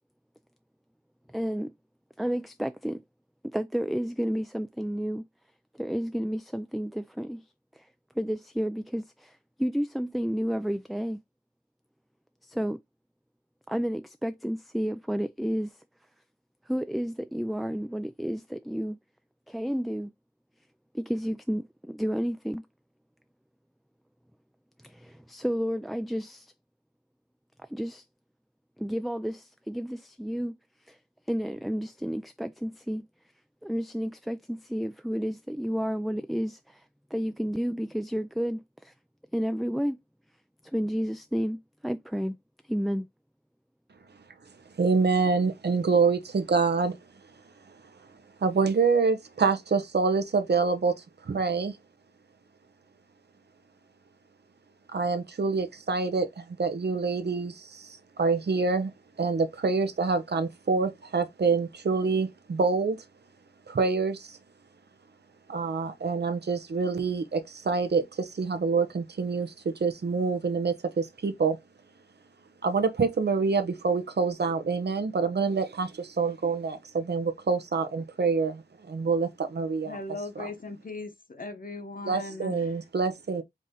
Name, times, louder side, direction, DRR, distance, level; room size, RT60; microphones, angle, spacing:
voice 1, 1.3-1.7 2.2-3.0 3.4-5.3 5.7-7.5 7.7-7.9 8.2-11.2 12.4-12.8 13.7-15.8 16.7-19.0 19.5-20.1 20.9-22.6 24.8-26.5 27.7-28.0 28.8-30.6 30.9-31.0 31.3-33.1 33.6-36.8 37.1-38.9 39.3-40.0 40.6-42.4 42.7-43.1, equal, ahead, 0.4 m, -31 dB
voice 2, 44.8-47.0 48.4-51.0 51.2-51.7 54.9-58.9 59.2-63.0 63.7-64.4 65.5-71.6 72.6-80.0 80.4-80.5 82.1-83.4, right 4 dB, 75° right, 0.9 m, -26 dB
voice 3, 79.8-82.7, left 2 dB, 55° left, 1.1 m, -38 dB
4.9 x 2.7 x 3.8 m
cardioid pair, 45°, 17 cm